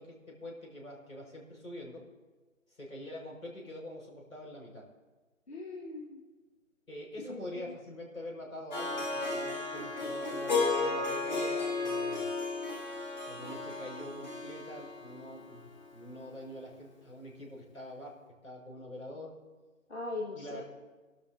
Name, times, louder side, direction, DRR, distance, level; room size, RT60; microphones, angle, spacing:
voice 1, 0.0-2.0 2.7-4.8 6.9-12.3 13.2-18.1 18.4-19.3 20.3-20.6, left 1 dB, 80° left, -1 dB, 5.2 m, -45 dB
voice 2, 5.5-6.2 7.2-7.7 19.9-20.6, left 2 dB, 55° left, -2 dB, 1.5 m, -40 dB
Harp, 8.7-15.9, left 3 dB, 30° left, 2.0 m, -34 dB
27.0 x 12.0 x 2.7 m, 1.3 s
figure-of-eight pair, 160°, 41 cm